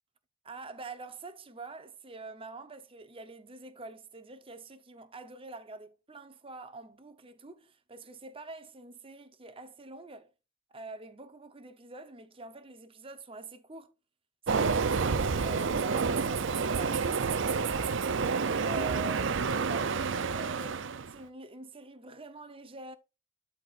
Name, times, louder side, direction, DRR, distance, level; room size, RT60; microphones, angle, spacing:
voice 1, 0.4-10.3 10.7-13.9 14.5-18.0 18.5-23.0, right 2 dB, 25° right, 0.9 m, -46 dB
Train, 14.5-21.2, right 5 dB, 60° right, 0.6 m, -29 dB
12.5 x 4.4 x 2.5 m
head